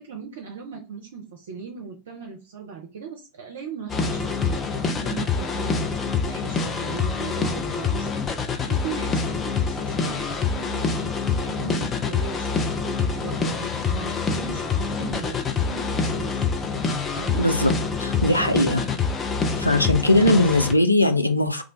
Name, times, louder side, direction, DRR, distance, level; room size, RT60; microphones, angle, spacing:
voice 1, 0.0-4.7 5.0-5.9 6.2-8.1 8.7-11.1 11.4-16.4 17.1-17.4 18.3-18.5, right 6 dB, 60° right, 1 dB, 0.5 m, -38 dB
sound 1, 3.9-20.7, left 5 dB, 20° left, 0.4 m, -26 dB
voice 2, 17.4-17.7 18.0-18.8 19.6-21.6, left 1 dB, 85° left, 6 dB, 0.4 m, -19 dB
2.4 x 2.2 x 3.7 m, 0.33 s
figure-of-eight pair, 90°, 0 cm